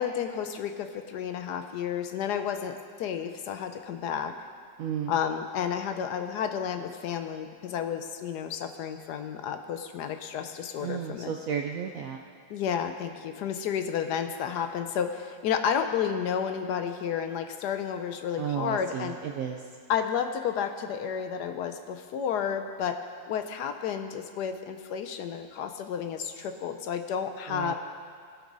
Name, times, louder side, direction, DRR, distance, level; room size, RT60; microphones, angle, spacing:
voice 1, 0.0-4.3 5.1-11.3 12.5-19.2 19.9-23.0 23.3-27.7, left 8 dB, 75° left, 7 dB, 1.1 m, -31 dB
voice 2, 4.8-5.1 10.8-12.2 18.4-19.6 27.5-27.7, right 8 dB, 70° right, 3 dB, 0.8 m, -33 dB
18.0 x 6.2 x 3.9 m, 2.2 s
omnidirectional pair, 1.9 m